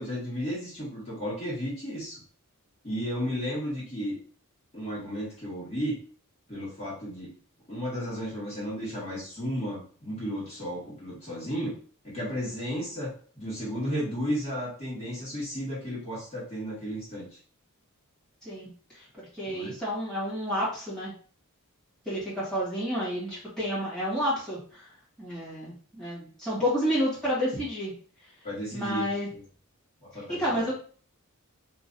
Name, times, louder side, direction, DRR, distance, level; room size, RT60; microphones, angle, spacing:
voice 1, 0.0-2.2 2.8-4.2 4.7-5.9 6.5-7.3 7.7-11.8 12.0-17.4 19.5-19.7 28.4-29.4 30.0-30.7, equal, 30° left, -8 dB, 1.6 m, -33 dB
voice 2, 18.4-19.0 19.3-21.1 22.0-24.9 25.2-27.9 28.7-29.3 30.3-30.7, equal, 5° left, -9 dB, 1.6 m, -30 dB
3.0 x 2.4 x 3.9 m, 0.44 s
head